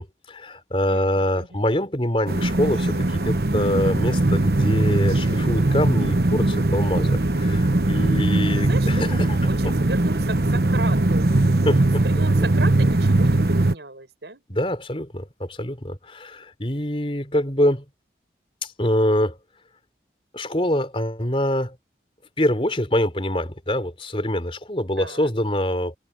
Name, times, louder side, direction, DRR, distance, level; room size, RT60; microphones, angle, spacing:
voice 1, 0.0-9.4 11.6-12.0 14.5-17.8 18.6-19.4 20.3-21.8 22.4-26.0, left 1 dB, 30° left, 3.8 m, -25 dB
voice 2, 0.9-1.6 8.5-9.0 9.5-11.3 12.0-14.4 25.0-25.3, right 3 dB, 80° right, 6.3 m, -35 dB
sound 1, 2.3-13.7, right 2 dB, 60° right, 1.1 m, -20 dB
head